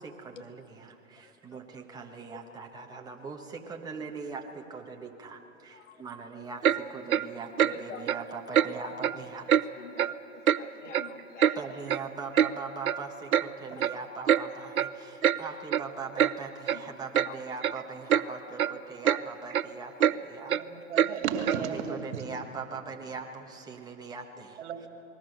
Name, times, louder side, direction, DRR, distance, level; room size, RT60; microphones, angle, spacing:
voice 1, 0.0-9.6 11.5-20.5 21.7-24.9, right 4 dB, 10° right, 1 dB, 1.3 m, -41 dB
voice 2, 1.2-1.6 5.7-6.0 7.7-8.0 8.8-8.9 9.8-11.6 15.1-15.2 15.5-15.6 16.7-16.8 17.3-17.4, left 7 dB, 60° left, 8 dB, 1.8 m, -47 dB
Clock, 6.6-6.8 7.1-7.3 7.6-7.7 8.1-8.2 8.5-8.7 9.0-9.2 9.5-9.6 10.0-10.1 10.5-10.6 10.9-11.6 11.9-12.0 12.3-12.5 12.8-13.0 13.3-13.5 13.8-13.9 14.3-14.4 14.8-14.9 15.2-15.4 15.7-15.8 16.2-16.3 16.7-16.8 17.1-17.3 17.6-17.8 18.1-18.2 18.6-18.7 19.0-19.2 19.5-19.6 20.0-20.1 20.5-20.6 21.0-21.1 21.5-21.6, right 9 dB, 90° right, 0.7 m, -24 dB
voice 3, 20.5-22.3 24.6-24.9, right 7 dB, 55° right, 5 dB, 2.6 m, -34 dB
28.0 x 20.5 x 6.7 m, 2.8 s
hypercardioid pair, 130°, 41 cm